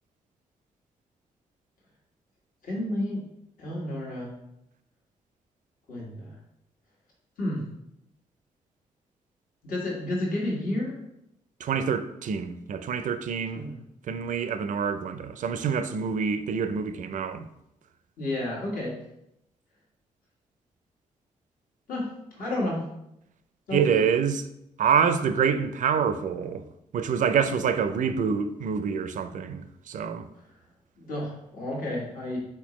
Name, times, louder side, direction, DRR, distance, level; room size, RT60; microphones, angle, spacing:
voice 1, 2.6-3.2 3.6-4.3 5.9-6.4 7.4-7.7 9.6-11.0 13.5-13.8 18.2-19.0 21.9-22.8 23.7-24.0 31.0-32.4, left 1 dB, 65° left, 1.4 m, -31 dB
voice 2, 11.6-13.7 14.1-17.5 23.7-24.5 24.8-26.6 26.9-30.3, right 7 dB, 55° right, 0.4 m, -26 dB
4.3 x 4.0 x 3.0 m
hypercardioid pair, 45°, 15 cm